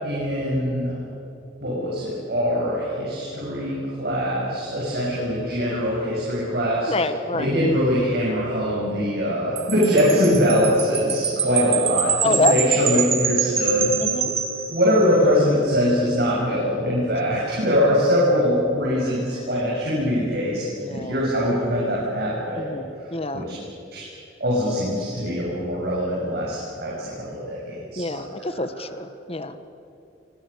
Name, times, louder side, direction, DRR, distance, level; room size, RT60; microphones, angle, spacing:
voice 1, 0.0-1.0 1.6-6.9 7.3-14.0 14.7-23.1 23.3-23.6 23.9-24.0 24.4-28.8, equal, 55° right, -5 dB, 7.2 m, -23 dB
voice 2, 6.9-7.5 12.2-13.0 14.0-14.3 20.8-21.2 22.6-23.5 27.9-29.6, left 2 dB, 30° left, 10 dB, 1.5 m, -26 dB
Wind chime, 9.6-15.2, right 7 dB, 35° right, 2.5 m, -26 dB
27.0 x 26.0 x 7.0 m, 2.7 s
head